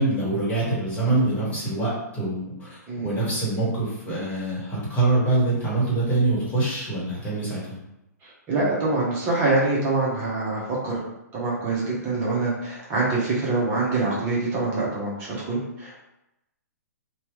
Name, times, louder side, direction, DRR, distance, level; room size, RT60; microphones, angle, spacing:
voice 1, 0.0-7.8, right 2 dB, 15° left, -7 dB, 1.3 m, -24 dB
voice 2, 8.2-11.0 11.3-15.9, right 3 dB, 30° right, -6 dB, 0.9 m, -25 dB
3.0 x 2.3 x 3.0 m, 0.89 s
hypercardioid pair, 130°, 9 cm